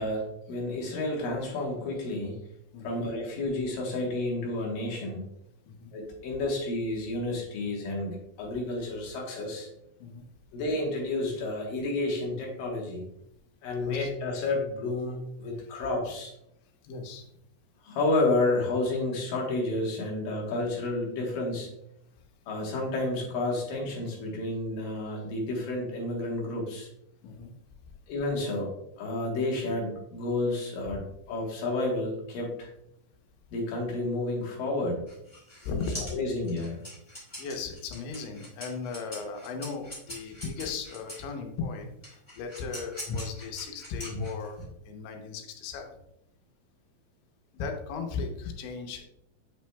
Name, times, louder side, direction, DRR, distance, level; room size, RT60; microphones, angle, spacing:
voice 1, 0.0-2.4 2.8-5.3 5.9-9.7 10.5-13.0 13.6-16.3 17.8-21.7 22.5-26.9 28.1-28.7 29.0-32.7 33.5-35.0 36.1-36.8, left 2 dB, 65° left, -2 dB, 2.5 m, -30 dB
voice 2, 13.8-14.1 16.8-17.3 27.2-27.5 35.7-36.2 37.4-46.0 47.5-49.1, left 4 dB, 85° left, 3 dB, 3.3 m, -36 dB
sound 1, 35.1-41.3 42.0-44.6, equal, 15° left, 1.2 m, -43 dB
8.0 x 6.0 x 2.2 m, 0.79 s
omnidirectional pair, 5.1 m